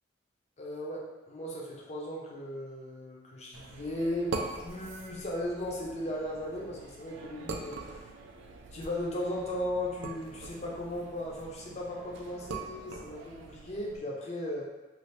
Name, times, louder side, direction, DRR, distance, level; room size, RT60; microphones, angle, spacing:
voice 1, 0.6-8.0 8.7-14.6, left 1 dB, 35° left, -3 dB, 0.5 m, -36 dB
sound 1, 3.5-14.0, right 4 dB, 80° right, 0.3 m, -43 dB
2.6 x 2.4 x 3.2 m, 1.1 s
head